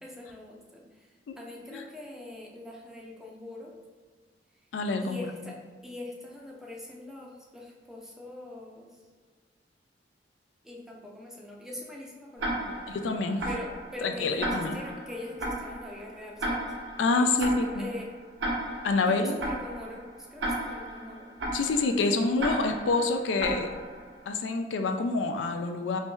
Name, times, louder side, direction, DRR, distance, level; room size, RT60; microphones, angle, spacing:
voice 1, 0.0-3.7 5.0-9.0 10.6-12.9 13.4-16.7 17.2-18.1 19.1-21.3, left 2 dB, 5° right, -2 dB, 0.5 m, -43 dB
voice 2, 4.7-5.2 12.9-13.4 14.0-14.8 17.0-17.9 18.8-19.4 21.5-23.7 24.3-26.0, left 3 dB, 80° left, 6 dB, 0.3 m, -27 dB
Tick-tock, 12.4-24.2, right 1 dB, 75° right, 0.8 m, -35 dB
3.0 x 2.7 x 3.6 m, 1.5 s
head